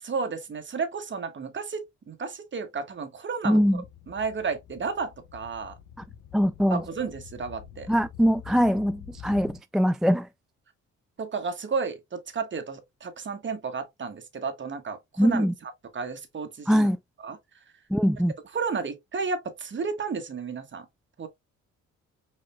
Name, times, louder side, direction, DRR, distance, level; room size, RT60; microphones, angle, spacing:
voice 1, 0.0-5.7 6.7-7.9 11.2-15.5 15.9-16.9 17.2-17.4 18.5-20.9 21.2-21.3, right 5 dB, 40° right, 1.4 m, -32 dB
voice 2, 3.4-3.8 6.3-6.8 7.9-10.3 15.2-15.5 16.7-17.0 17.9-18.3, equal, ahead, 0.3 m, -22 dB
sound 1, 3.7-9.6, left 9 dB, 85° left, 1.1 m, -47 dB
5.0 x 4.3 x 2.3 m
cardioid pair, 90°, 30 cm